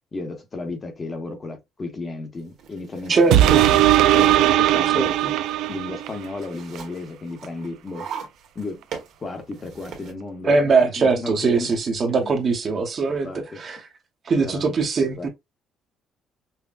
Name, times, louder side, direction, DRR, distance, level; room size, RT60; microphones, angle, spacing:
voice 1, 0.1-3.8 4.1-5.1 5.7-8.1 8.5-8.8 9.2-11.8 12.1-12.4 13.0-13.6 14.4-14.7 15.2-15.3, left 3 dB, 25° left, 0.9 m, -34 dB
sound 1, 2.4-10.1, right 7 dB, 60° right, 1.4 m, -42 dB
voice 2, 3.1-3.6 4.9-5.0 10.4-13.8 14.3-15.3, right 4 dB, 35° right, 0.8 m, -21 dB
sound 2, 3.3-6.2 6.8-6.9, right 13 dB, 80° right, 0.4 m, -18 dB
5.5 x 2.1 x 2.4 m
cardioid pair, 155°, 0 cm